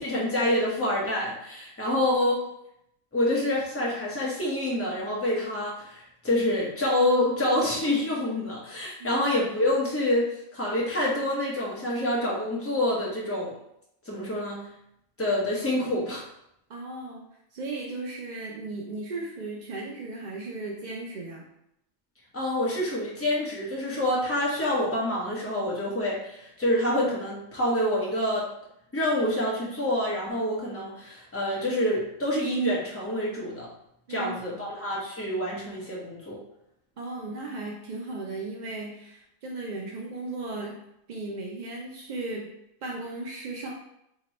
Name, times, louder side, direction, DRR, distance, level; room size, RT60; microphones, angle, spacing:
voice 1, 0.0-2.4 3.1-10.3 10.5-13.5 14.1-14.6 15.2-16.2 22.3-28.5 28.9-33.7 34.1-36.4, left 1 dB, 10° left, -5 dB, 0.8 m, -27 dB
voice 2, 16.7-17.2 17.5-21.4 34.1-34.6 37.0-40.8 41.1-42.5 42.8-43.7, right 2 dB, 65° right, -2 dB, 0.4 m, -36 dB
3.0 x 2.9 x 4.1 m, 0.79 s
omnidirectional pair, 1.4 m